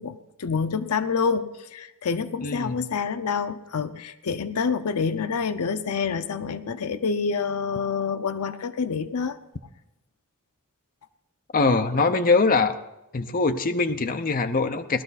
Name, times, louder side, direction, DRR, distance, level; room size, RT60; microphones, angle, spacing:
voice 1, 0.0-9.4, left 5 dB, 75° left, 12 dB, 0.6 m, -27 dB
voice 2, 2.4-2.8 11.5-12.8 13.1-15.0, left 3 dB, 40° left, 8 dB, 0.6 m, -22 dB
17.5 x 12.0 x 4.1 m, 0.90 s
head